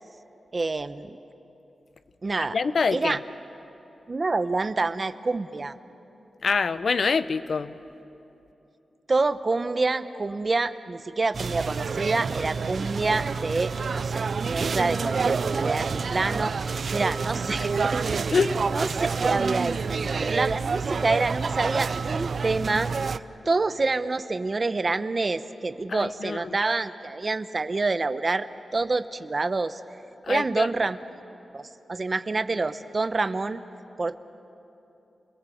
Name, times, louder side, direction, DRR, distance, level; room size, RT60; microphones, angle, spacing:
voice 1, 0.5-1.2 2.2-2.6 2.9-3.2 4.1-5.8 9.1-18.0 18.7-28.5 28.7-29.8 30.3-31.0 31.5-33.6 34.0-34.2, right 3 dB, 40° right, 12 dB, 1.0 m, -27 dB
voice 2, 2.5-3.2 6.4-7.7 18.3-18.5 25.9-26.4 30.3-30.7, left 5 dB, 65° left, 14 dB, 0.8 m, -25 dB
sound 1, 11.3-23.2, right 5 dB, 65° right, 0.5 m, -28 dB
29.0 x 21.0 x 7.9 m, 2.9 s
cardioid pair, 65°, 0 cm